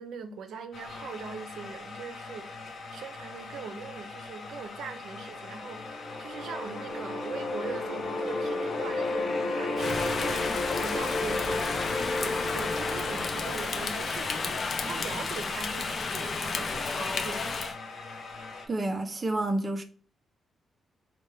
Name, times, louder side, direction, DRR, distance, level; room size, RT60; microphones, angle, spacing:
voice 1, 0.0-11.6 11.9-17.6, right 5 dB, 85° right, 0.5 m, -41 dB
sound 1, 0.7-18.7, left 3 dB, 90° left, 0.9 m, -42 dB
sound 2, 5.4-14.6, left 2 dB, 25° left, 1.2 m, -33 dB
Rain, 9.8-17.7, left 4 dB, 40° left, 0.4 m, -32 dB
voice 2, 18.7-19.8, right 2 dB, 25° right, 0.4 m, -29 dB
4.2 x 2.2 x 3.1 m
wide cardioid pair, 145°, 0 cm